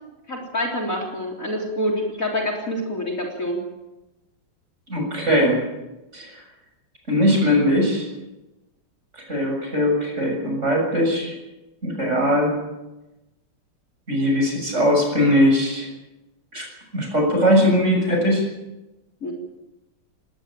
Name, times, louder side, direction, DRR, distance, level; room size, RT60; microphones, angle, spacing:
voice 1, 0.3-3.6 19.2-19.3, equal, 35° left, 2 dB, 3.8 m, -26 dB
voice 2, 4.9-5.6 6.1-6.4 7.1-8.1 9.3-11.3 11.8-12.5 14.1-15.9 16.5-16.7 16.9-18.4, equal, 30° right, 1 dB, 7.4 m, -20 dB
19.5 x 18.0 x 9.0 m, 1.0 s
omnidirectional pair, 2.3 m